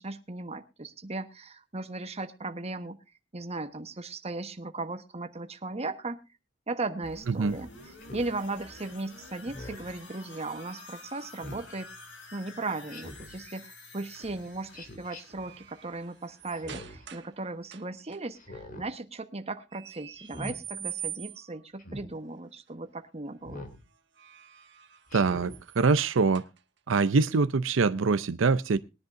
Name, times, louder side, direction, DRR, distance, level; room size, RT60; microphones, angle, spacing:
voice 1, 0.0-3.0 3.3-6.2 6.7-7.7 8.1-11.9 12.3-23.7, right 2 dB, 35° right, 8 dB, 1.2 m, -37 dB
sound 1, 7.0-16.7 17.1-17.2, left 3 dB, 70° left, 3.8 m, -50 dB
Speech synthesizer, 8.0-8.3 9.4-10.0 11.4-11.7 12.9-13.4 14.7-15.2 16.5-17.1 18.4-18.9 20.2-20.6 21.8-22.1 23.4-23.8 25.1-25.6, left 1 dB, 45° left, 2.9 m, -43 dB
sound 2, 9.5-12.4 14.2-14.5 14.9-17.4 17.7-18.2 19.7-21.6 23.9-26.8, right 10 dB, 65° right, 1.1 m, -45 dB
voice 2, 25.1-26.4 26.9-28.8, right 4 dB, 85° right, 13 dB, 0.6 m, -24 dB
21.0 x 10.5 x 2.6 m, 0.27 s
head